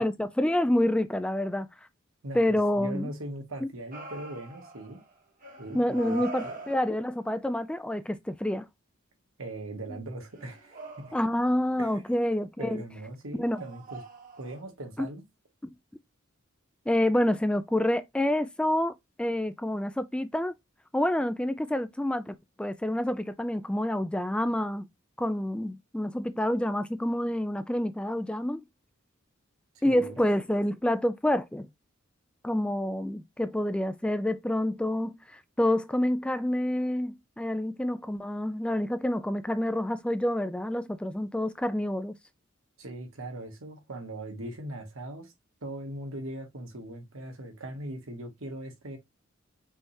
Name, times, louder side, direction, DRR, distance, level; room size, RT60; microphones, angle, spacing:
voice 1, 0.0-1.7 2.3-3.1 5.7-8.7 11.1-12.8 13.4-13.6 15.0-15.1 15.6-15.7 16.9-20.5 20.9-24.9 25.2-28.6 29.8-31.7 32.4-42.1, left 1 dB, 5° left, 0.3 m, -28 dB
voice 2, 2.8-5.0 5.6-6.6 9.4-11.1 11.8-12.0 12.6-14.0 14.4-15.2 29.8-30.2 42.8-45.3 45.6-49.0, right 1 dB, 85° right, 1.4 m, -40 dB
sound 1, 3.9-5.1 5.4-7.2 10.3-11.5 13.5-14.6, right 2 dB, 40° right, 1.2 m, -43 dB
5.4 x 3.3 x 2.7 m
head